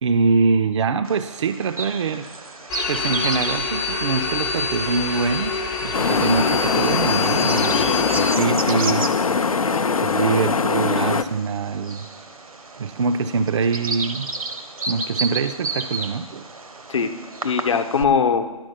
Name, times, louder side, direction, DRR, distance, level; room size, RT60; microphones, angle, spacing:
voice 1, 0.0-2.3 2.9-9.1 10.0-12.1 12.8-14.3 14.9-16.5, right 4 dB, 55° right, 10 dB, 0.4 m, -24 dB
Bird vocalization bird call bird song, 1.0-18.0, right 3 dB, 80° right, 0.8 m, -33 dB
sound 1, 2.7-8.4, left 5 dB, 15° left, 0.5 m, -26 dB
sound 2, 5.9-11.2, left 5 dB, 80° left, 0.5 m, -21 dB
voice 2, 7.7-8.0 9.6-10.3 10.7-10.8 16.9-17.1 17.4-18.4, left 6 dB, 60° left, 8 dB, 0.8 m, -22 dB
10.5 x 4.5 x 5.7 m, 1.2 s
figure-of-eight pair, 135°, 18 cm